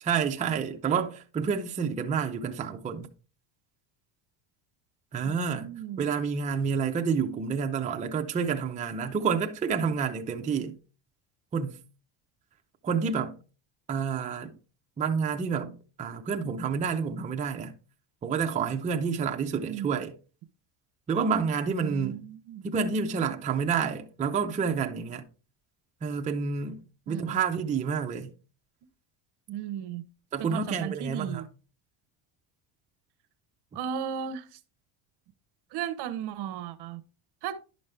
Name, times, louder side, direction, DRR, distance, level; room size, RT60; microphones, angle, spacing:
voice 1, 0.0-3.1 5.1-5.7 6.0-10.8 11.5-11.8 12.8-13.4 13.9-14.5 15.0-15.7 16.0-17.7 18.2-20.1 21.1-22.2 22.6-25.2 26.0-28.3 30.3-31.4, right 6 dB, 15° right, 0.5 m, -29 dB
voice 2, 5.2-6.1 19.7-19.9 21.8-22.7 27.1-27.4 29.5-30.1 30.4-31.5 33.7-34.6 35.7-37.0 37.4-37.6, right 9 dB, 55° right, 0.8 m, -35 dB
10.5 x 5.3 x 3.3 m
cardioid pair, 135°, 47 cm